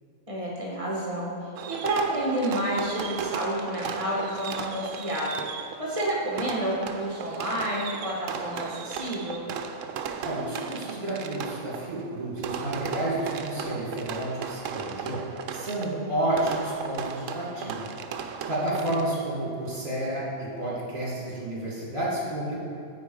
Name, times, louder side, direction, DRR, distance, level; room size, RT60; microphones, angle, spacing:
voice 1, 0.3-1.3 1.7-5.5 5.8-9.4, right 1 dB, 25° right, -4 dB, 1.5 m, -29 dB
Fireworks, 1.6-19.3, right 7 dB, 85° right, 0.9 m, -36 dB
voice 2, 10.2-15.2 15.5-17.9 18.2-22.6, right 1 dB, 45° right, -5 dB, 2.1 m, -30 dB
8.9 x 4.6 x 4.7 m, 2.6 s
omnidirectional pair, 1.3 m